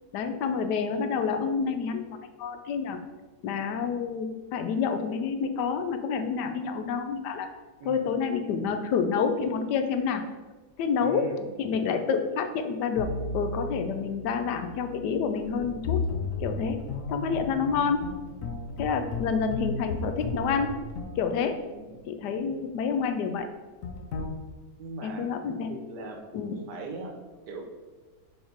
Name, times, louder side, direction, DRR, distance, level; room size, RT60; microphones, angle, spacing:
voice 1, 0.1-3.0 3.4-7.5 7.8-10.2 10.8-11.3 11.6-16.0 16.4-16.8 17.1-18.0 18.8-20.8 21.2-21.6 22.1-23.5 25.0-25.7 26.3-26.6, left 6 dB, 85° left, 7 dB, 1.2 m, -28 dB
voice 2, 7.8-8.1 11.0-11.5 17.5-17.9 21.7-22.1 24.8-25.3 25.7-26.2 26.7-27.1 27.5-27.6, right 2 dB, 85° right, 2 dB, 1.6 m, -40 dB
sound 1, 13.0-22.4 23.8-24.3, left 3 dB, 60° left, 1.1 m, -35 dB
5.3 x 4.3 x 4.5 m, 1.3 s
omnidirectional pair, 1.7 m